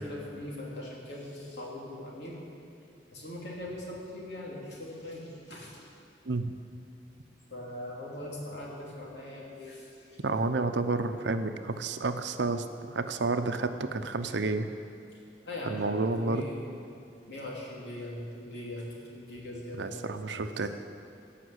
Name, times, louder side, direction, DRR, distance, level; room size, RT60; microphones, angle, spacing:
voice 1, 0.0-2.4 3.1-5.9 7.5-10.2 15.4-16.7 17.3-20.5, left 1 dB, 70° left, -4 dB, 3.0 m, -41 dB
voice 2, 10.2-12.7 12.9-14.7 15.7-16.5 19.8-20.7, right 3 dB, 80° right, 9 dB, 0.7 m, -30 dB
17.5 x 5.9 x 8.1 m, 2.6 s
head